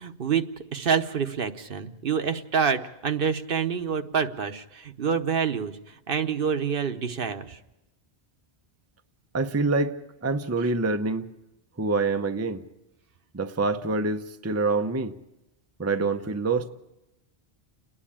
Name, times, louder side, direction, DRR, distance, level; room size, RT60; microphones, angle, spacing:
voice 1, 0.0-5.7 6.1-7.6, right 6 dB, 60° right, 1.1 m, -27 dB
voice 2, 9.3-10.0 10.2-11.3 11.8-12.6 13.3-15.2 15.8-16.7, right 3 dB, 20° right, 0.6 m, -26 dB
30.0 x 10.0 x 8.7 m
omnidirectional pair, 1.1 m